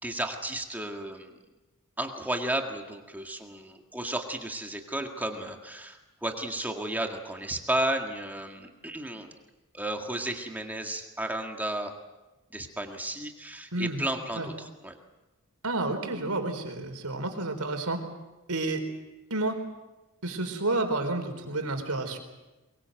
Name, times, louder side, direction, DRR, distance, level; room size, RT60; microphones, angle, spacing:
voice 1, 0.0-1.4 2.0-9.3 9.7-11.9 12.5-15.0, right 1 dB, 10° right, 3 dB, 1.9 m, -33 dB
voice 2, 13.7-14.0 14.4-14.5 15.6-18.0 18.5-18.8 19.3-19.6 20.2-22.2, right 2 dB, 80° right, 5 dB, 4.2 m, -30 dB
23.0 x 22.5 x 7.8 m, 1.1 s
head